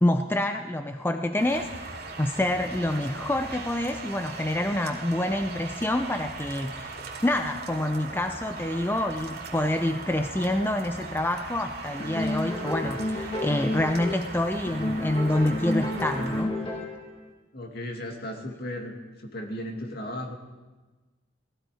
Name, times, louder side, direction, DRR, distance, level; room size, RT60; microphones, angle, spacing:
voice 1, 0.0-16.8, left 1 dB, 10° left, 7 dB, 0.5 m, -27 dB
sound 1, 1.4-16.4, right 3 dB, 55° right, 2.7 m, -39 dB
sound 2, 12.0-14.3 14.7-17.1, left 1 dB, 30° left, 2.1 m, -31 dB
voice 2, 17.5-18.9 19.2-20.3, left 1 dB, 55° left, 2 dB, 2.2 m, -35 dB
18.5 x 15.0 x 4.9 m, 1.2 s
head